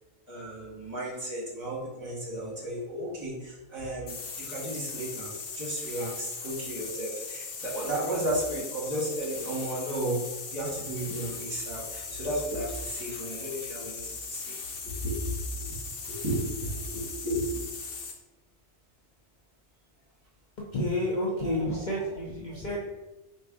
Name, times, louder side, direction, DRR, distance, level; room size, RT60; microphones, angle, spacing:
voice 1, 0.3-14.5 14.8-15.8 16.1-17.7 21.4-21.8, right 1 dB, 35° right, -6 dB, 1.6 m, -34 dB
sound 1, 4.1-18.2, left 5 dB, 90° left, 1.0 m, -39 dB
voice 2, 20.7-22.8, left 1 dB, 50° left, -4 dB, 0.6 m, -30 dB
4.6 x 2.6 x 3.5 m, 1.1 s
omnidirectional pair, 1.2 m